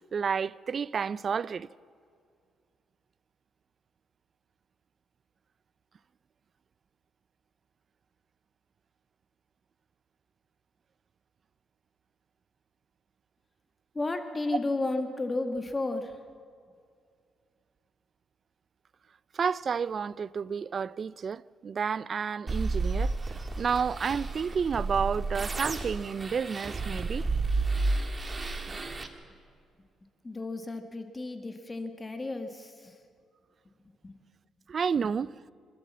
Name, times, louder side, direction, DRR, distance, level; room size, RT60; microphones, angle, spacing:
voice 1, 0.0-1.7 19.3-27.3 34.7-35.3, right 6 dB, 45° right, 0.4 m, -31 dB
voice 2, 13.9-16.2 28.7-28.8 30.2-33.0 34.0-34.2, left 2 dB, 25° left, 1.7 m, -33 dB
sound 1, 22.5-29.1, right 3 dB, 30° right, 1.7 m, -31 dB
27.0 x 13.0 x 7.4 m
cardioid pair, 90°, 0 cm